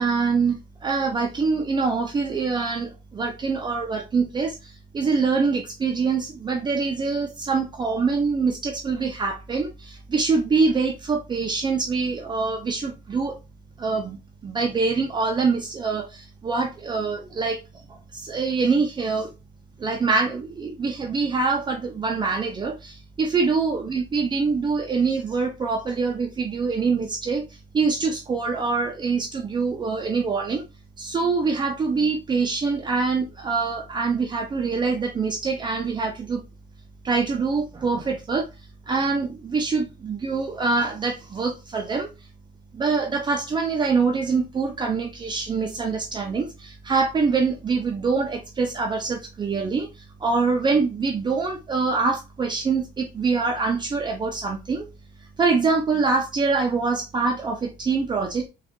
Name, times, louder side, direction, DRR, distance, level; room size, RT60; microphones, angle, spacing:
voice 1, 0.0-13.4 13.8-17.6 17.9-19.3 19.8-30.6 31.0-36.4 37.0-38.5 38.9-42.1 42.7-54.9 55.4-58.5, right 4 dB, 25° right, 0.5 m, -24 dB
3.7 x 2.4 x 3.6 m
cardioid pair, 110°, 17 cm